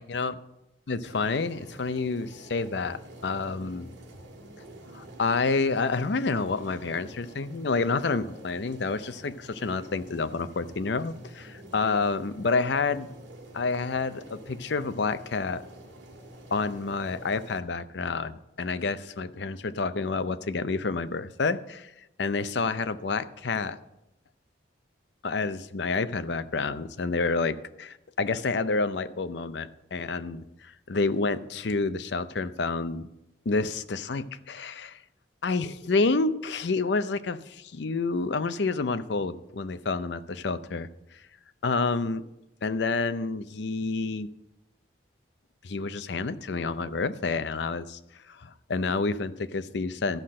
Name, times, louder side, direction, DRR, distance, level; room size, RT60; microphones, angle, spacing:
voice 1, 0.0-0.3 0.9-3.9 4.9-13.1 13.5-15.6 16.5-21.9 22.2-23.8 25.2-33.1 33.5-35.0 35.4-40.9 41.6-42.3 42.6-44.3 45.6-48.0 48.3-50.2, left 4 dB, 65° left, 13 dB, 0.6 m, -29 dB
sound 1, 1.0-17.6, right 1 dB, 70° right, 2.0 m, -47 dB
13.0 x 5.8 x 6.4 m, 0.88 s
head